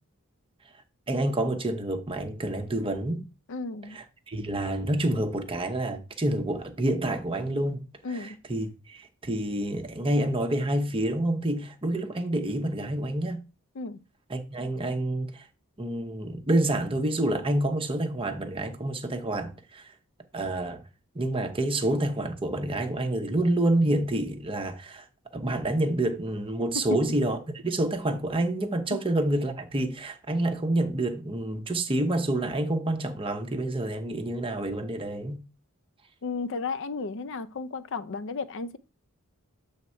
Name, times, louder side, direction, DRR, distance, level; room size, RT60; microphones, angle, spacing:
voice 1, 1.1-3.2 3.9-7.8 8.1-13.4 14.3-15.4 15.8-19.9 20.3-20.8 21.1-25.0 25.3-27.4 27.6-35.4, right 1 dB, 25° right, 0.8 m, -28 dB
voice 2, 3.5-4.0 8.0-8.4 13.7-14.0 28.9-29.0 36.2-38.8, left 4 dB, 60° left, 0.5 m, -34 dB
7.7 x 3.5 x 4.4 m
head